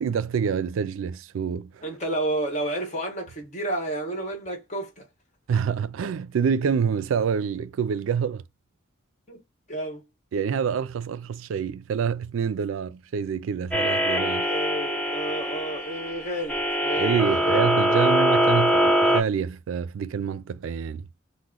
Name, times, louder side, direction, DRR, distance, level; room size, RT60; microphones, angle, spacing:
voice 1, 0.0-1.8 5.5-8.4 10.3-14.5 17.0-21.1, right 6 dB, 75° right, 0.3 m, -27 dB
voice 2, 1.8-5.1 9.3-9.4 9.7-10.0 14.4-18.1, right 1 dB, 35° left, 1.2 m, -31 dB
sound 1, 13.7-19.2, right 1 dB, 5° left, 0.5 m, -23 dB
2.9 x 2.1 x 3.7 m
head